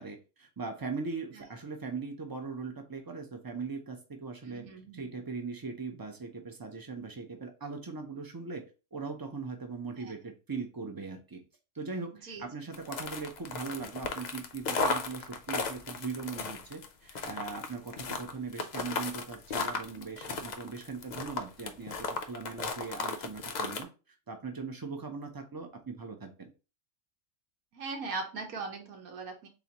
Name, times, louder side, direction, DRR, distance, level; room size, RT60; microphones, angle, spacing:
voice 1, 0.0-4.7 4.9-8.7 8.9-11.4 11.7-23.9 24.3-26.5, right 4 dB, 35° right, 4 dB, 0.3 m, -40 dB
voice 2, 4.4-5.1 10.0-10.1 12.2-12.5 27.7-29.5, right 3 dB, 90° right, 2 dB, 1.4 m, -39 dB
sound 1, 12.7-23.8, left 4 dB, 90° left, 0.3 m, -35 dB
3.9 x 3.7 x 2.9 m, 0.31 s
omnidirectional pair, 1.5 m